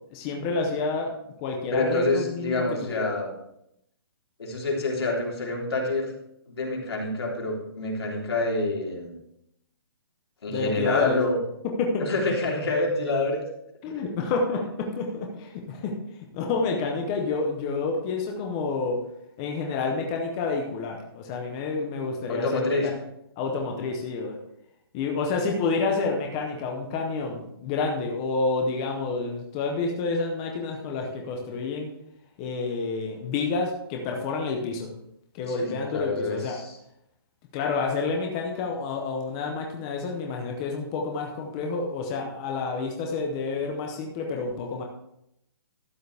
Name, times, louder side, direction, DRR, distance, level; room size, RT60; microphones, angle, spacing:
voice 1, 0.1-1.1 1.4-3.1 10.5-11.2 11.8-12.1 13.8-15.9 16.3-19.0 19.4-23.0 23.4-24.4 24.9-31.9 32.4-34.9 35.3-36.6 37.5-44.8, left 4 dB, 15° left, 1 dB, 0.7 m, -29 dB
voice 2, 1.7-3.4 4.4-6.1 6.5-9.1 10.4-11.4 12.0-13.4 22.3-22.9 35.5-36.8, left 2 dB, 85° left, -2 dB, 3.5 m, -27 dB
12.5 x 9.3 x 3.4 m, 0.79 s
hypercardioid pair, 180°, 13 cm